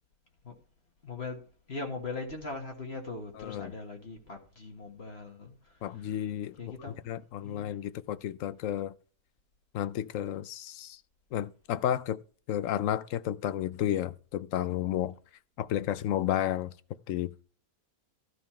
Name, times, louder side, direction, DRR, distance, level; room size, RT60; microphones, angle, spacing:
voice 1, 1.0-1.4 1.7-6.2 6.6-7.0 7.4-7.8, left 3 dB, 45° left, 1.7 m, -40 dB
voice 2, 3.4-3.7 5.8-6.6 7.1-8.9 9.7-11.0 11.3-12.2 12.5-15.1 15.6-16.7 17.1-17.4, left 11 dB, 70° left, 0.9 m, -32 dB
13.0 x 5.4 x 4.4 m
omnidirectional pair, 1.5 m